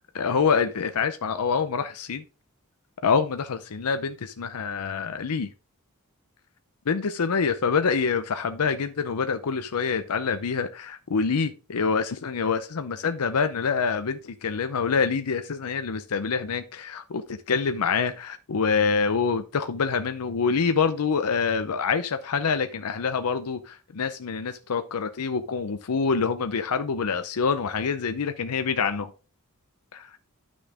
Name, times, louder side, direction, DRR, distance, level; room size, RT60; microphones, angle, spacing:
voice 1, 0.1-2.2 3.0-5.5 6.9-29.1 29.9-30.1, left 5 dB, 85° left, 0.6 m, -26 dB
10.0 x 6.2 x 3.5 m
head